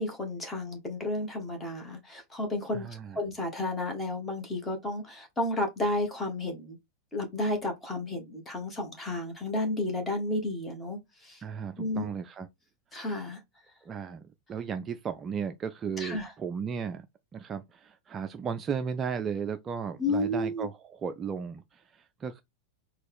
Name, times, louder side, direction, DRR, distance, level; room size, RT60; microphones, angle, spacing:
voice 1, 0.0-6.8 7.1-11.4 11.8-12.1 12.9-13.4 16.0-16.3 20.0-20.7, left 2 dB, 15° left, 1.4 m, -32 dB
voice 2, 2.7-3.2 11.4-12.5 13.9-14.2 14.5-17.1 17.3-22.4, right 6 dB, 25° right, 0.3 m, -35 dB
4.1 x 2.3 x 3.5 m
figure-of-eight pair, 90°, 0 cm